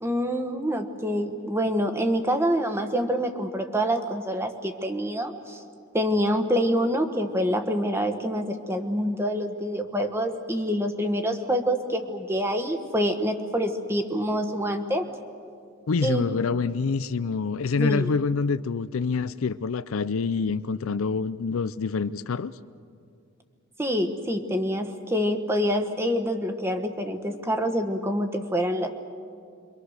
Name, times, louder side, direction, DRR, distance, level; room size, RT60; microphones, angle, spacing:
voice 1, 0.0-5.6 5.9-15.1 16.0-16.2 17.8-18.1 23.8-28.9, equal, 10° right, 6 dB, 1.3 m, -26 dB
voice 2, 15.9-22.5, left 4 dB, 80° left, 14 dB, 0.5 m, -26 dB
27.5 x 24.0 x 6.5 m, 2.3 s
head